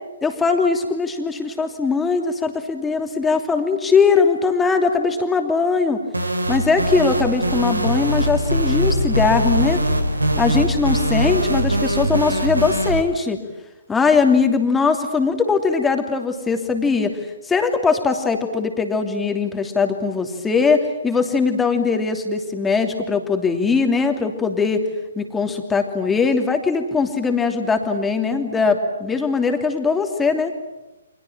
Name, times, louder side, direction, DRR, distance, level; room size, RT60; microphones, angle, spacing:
voice 1, 0.2-6.0 6.5-9.8 10.4-13.4 13.9-17.1 17.4-24.9 25.2-30.5, left 5 dB, 10° left, 5 dB, 2.9 m, -20 dB
sound 1, 6.1-13.0, equal, 80° right, 3.8 m, -21 dB
30.0 x 25.0 x 7.5 m, 1.0 s
figure-of-eight pair, 130°, 0 cm